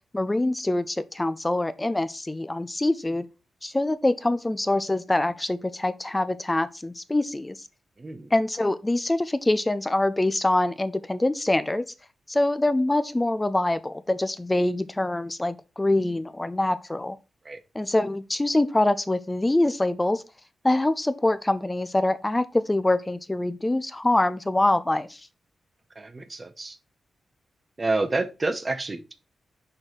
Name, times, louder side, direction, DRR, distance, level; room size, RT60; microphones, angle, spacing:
voice 1, 0.1-3.3 3.6-7.6 8.3-11.8 12.3-17.2 17.7-20.2 20.6-25.2, left 1 dB, 15° left, 0.3 m, -24 dB
voice 2, 8.0-8.3 17.4-17.6 26.0-26.8 27.8-29.1, right 3 dB, 25° right, 0.8 m, -29 dB
6.5 x 3.9 x 4.5 m
wide cardioid pair, 135°, 0 cm